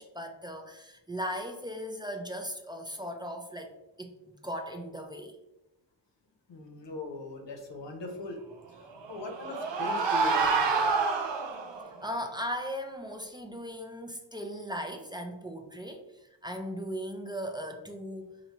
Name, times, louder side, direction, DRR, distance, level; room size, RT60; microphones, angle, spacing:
voice 1, 0.0-3.7 4.0-5.4 12.0-18.4, equal, 10° right, 2 dB, 0.5 m, -38 dB
voice 2, 6.5-8.4 8.7-10.9, left 2 dB, 85° left, 3 dB, 0.8 m, -40 dB
sound 1, 8.9-11.9, right 4 dB, 80° right, 0.6 m, -28 dB
4.3 x 2.7 x 2.9 m, 0.95 s
cardioid pair, 45°, 42 cm